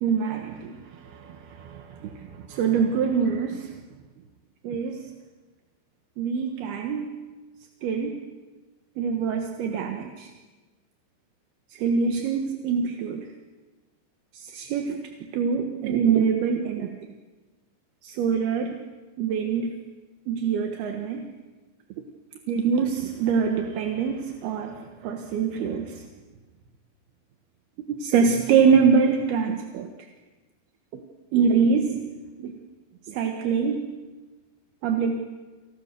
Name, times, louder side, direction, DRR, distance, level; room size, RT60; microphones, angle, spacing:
voice 1, 0.0-3.8 4.6-5.1 6.2-7.2 7.8-8.2 9.0-10.3 11.7-13.3 14.3-17.0 18.0-18.8 19.2-19.8 20.3-21.3 22.5-26.1 27.9-29.9 30.9-31.0 31.3-32.1 32.4-32.5 33.1-33.9 34.8-35.2, right 6 dB, 65° right, 4 dB, 2.9 m, -25 dB
29.5 x 27.5 x 6.8 m, 1.3 s
omnidirectional pair, 5.8 m